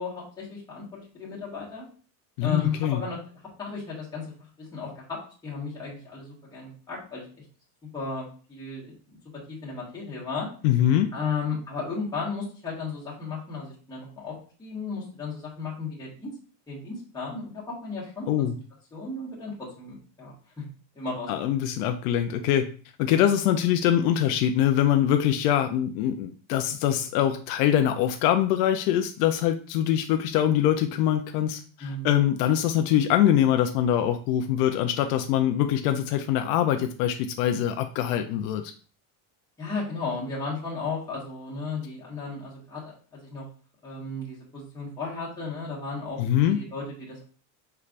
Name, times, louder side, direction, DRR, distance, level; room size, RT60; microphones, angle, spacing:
voice 1, 0.0-1.9 2.4-3.2 3.6-4.3 4.6-7.2 7.9-9.2 9.5-10.5 11.1-16.3 16.7-18.5 18.9-20.6 20.9-21.6 31.8-32.1 39.6-43.4 43.8-47.2, left 4 dB, 10° left, -7 dB, 1.4 m, -34 dB
voice 2, 2.4-3.0 10.6-11.1 18.3-18.5 21.3-22.7 23.0-38.7 46.2-46.6, left 11 dB, 70° left, 6 dB, 0.6 m, -23 dB
5.8 x 3.3 x 2.4 m, 0.40 s
cardioid pair, 175°, 50 cm